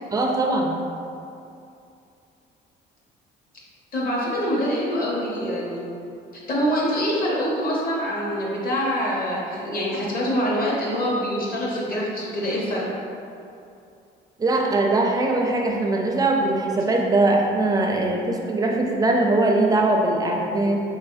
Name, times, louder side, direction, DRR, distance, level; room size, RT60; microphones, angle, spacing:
voice 1, 0.1-0.8 14.4-20.8, right 2 dB, 20° right, 0 dB, 0.5 m, -21 dB
voice 2, 3.9-5.9 6.3-12.9, equal, 45° left, -5 dB, 1.0 m, -25 dB
3.6 x 3.2 x 2.7 m, 2.6 s
cardioid pair, 95°, 20 cm